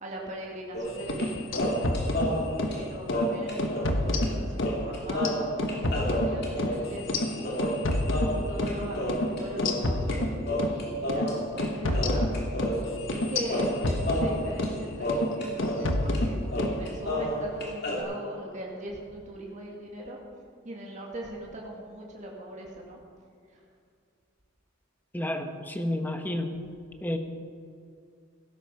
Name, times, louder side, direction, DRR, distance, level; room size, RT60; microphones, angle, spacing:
voice 1, 0.0-2.0 2.7-7.8 8.3-10.3 10.7-12.3 13.0-20.2 20.6-23.0, right 1 dB, 35° right, -2 dB, 1.9 m, -40 dB
sound 1, 0.7-1.3 1.6-4.0 4.2-4.3 4.6-10.2 10.5-11.7 11.9-13.2 13.5-15.9 16.1-16.2 16.5-18.0, equal, 50° left, 2.8 m, -31 dB
sound 2, 1.0-2.8 3.1-3.3 3.6-4.8 5.1-8.8 9.1-9.3 9.6-10.8 11.1-11.3 11.6-14.8 15.1-15.3 15.6-16.8, left 1 dB, 75° left, 1.2 m, -29 dB
voice 2, 25.1-26.5 27.0-27.2, left 1 dB, 10° left, 6 dB, 0.9 m, -30 dB
16.5 x 12.5 x 4.7 m, 2.3 s
head